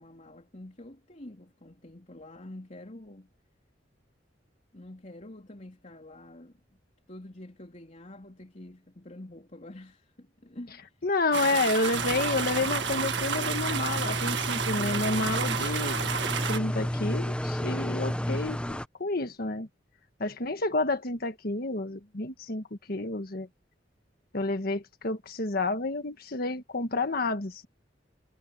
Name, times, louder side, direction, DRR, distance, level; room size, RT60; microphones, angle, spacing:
voice 1, 0.0-3.3 4.7-6.8 7.1-10.9, left 1 dB, 40° left, 3.6 m, -47 dB
voice 2, 11.0-16.0 16.5-19.7 20.2-23.5 24.3-27.7, left 2 dB, 55° left, 1.5 m, -30 dB
sound 1, 11.3-16.6, right 6 dB, 70° right, 1.9 m, -31 dB
sound 2, 11.9-18.9, equal, 5° left, 0.9 m, -32 dB
head